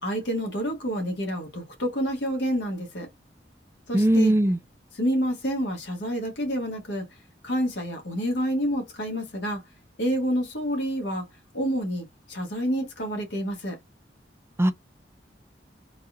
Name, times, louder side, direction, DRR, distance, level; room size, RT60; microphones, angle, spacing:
voice 1, 0.0-3.1 3.9-4.3 4.9-7.0 7.4-9.6 10.0-11.2 11.5-13.8, equal, 75° left, 1.6 m, -28 dB
voice 2, 3.9-4.6 14.6-14.7, right 1 dB, 15° right, 0.5 m, -19 dB
4.0 x 2.4 x 2.7 m
head